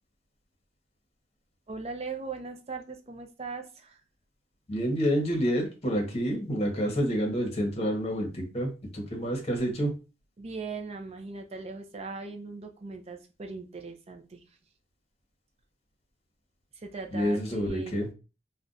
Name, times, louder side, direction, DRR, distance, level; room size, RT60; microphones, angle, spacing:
voice 1, 1.7-4.0 10.4-14.4 16.8-18.0, right 4 dB, 35° right, 4 dB, 0.5 m, -39 dB
voice 2, 4.7-9.9 17.1-18.1, equal, 35° left, 2 dB, 0.9 m, -28 dB
2.5 x 2.2 x 3.8 m, 0.31 s
head